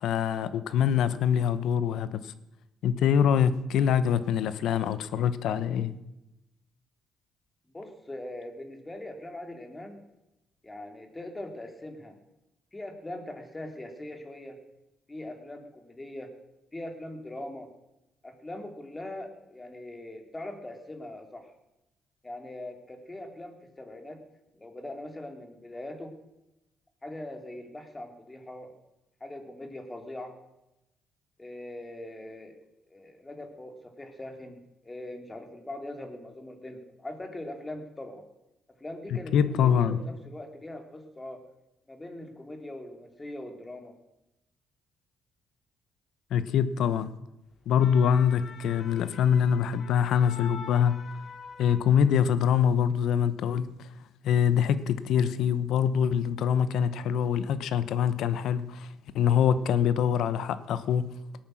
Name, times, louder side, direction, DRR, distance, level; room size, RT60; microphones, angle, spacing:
voice 1, 0.0-2.3 2.8-5.9 39.1-40.0 46.3-47.1 47.7-51.0 51.6-53.9 54.2-58.9 59.1-61.1, left 8 dB, 80° left, 0.9 m, -24 dB
voice 2, 7.7-10.0 10.6-12.2 12.7-14.6 15.1-16.3 16.7-17.7 18.2-21.5 22.2-24.2 24.5-26.1 27.0-28.7 29.2-30.3 31.4-32.5 32.9-38.2 38.8-39.3 39.6-41.4 41.9-43.9, left 1 dB, 20° left, 2.7 m, -41 dB
sound 1, 47.5-52.3 52.7-52.9, left 5 dB, 55° left, 1.5 m, -46 dB
18.5 x 8.7 x 6.3 m
cardioid pair, 90°, 0 cm